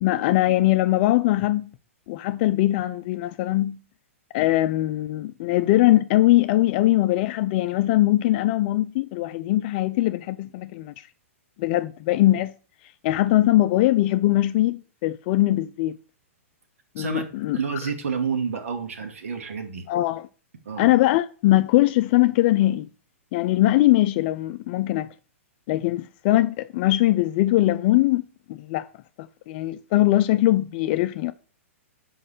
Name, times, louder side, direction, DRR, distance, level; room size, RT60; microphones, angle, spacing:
voice 1, 0.0-1.7 2.1-3.8 4.3-11.1 11.6-12.5 13.0-16.0 17.0-17.6 19.9-20.3 20.8-22.9 23.3-25.1 25.7-28.2 28.5-28.9 29.5-31.3, left 16 dB, 45° left, 0.5 m, -21 dB
voice 2, 17.5-19.8 20.7-20.9, right 6 dB, 75° right, 2.3 m, -29 dB
5.4 x 5.4 x 6.6 m
hypercardioid pair, 120°, 8 cm